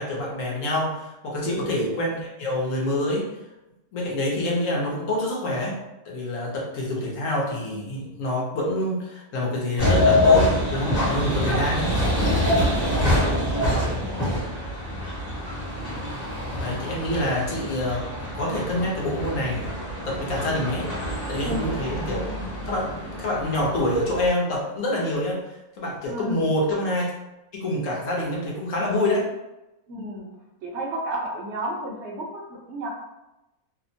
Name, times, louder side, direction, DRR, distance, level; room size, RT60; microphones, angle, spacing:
voice 1, 0.0-3.3 3.9-5.7 6.1-11.8 16.6-18.0 18.3-19.7 20.1-22.3 22.7-27.1 27.5-29.3, left 1 dB, 65° left, -3 dB, 1.0 m, -26 dB
voice 2, 1.5-1.8 11.3-12.0 12.5-14.5 21.4-21.8 26.1-26.5 29.9-30.3 30.6-32.9, right 1 dB, 65° right, -1 dB, 0.7 m, -33 dB
sound 1, 9.8-24.3, left 1 dB, 30° left, 1.0 m, -25 dB
2.8 x 2.0 x 2.6 m, 0.96 s
omnidirectional pair, 1.6 m